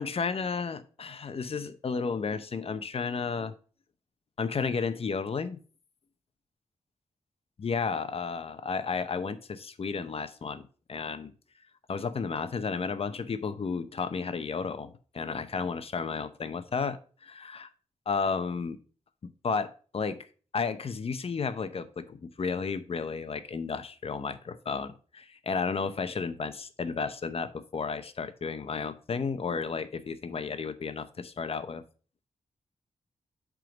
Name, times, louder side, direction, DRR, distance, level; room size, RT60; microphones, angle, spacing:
voice 1, 0.0-3.5 4.4-5.6 7.6-11.3 11.9-17.7 18.1-18.8 19.2-20.2 20.5-31.8, left 5 dB, 50° left, 11 dB, 0.7 m, -33 dB
7.7 x 3.8 x 5.1 m, 0.39 s
cardioid pair, 90°, 13 cm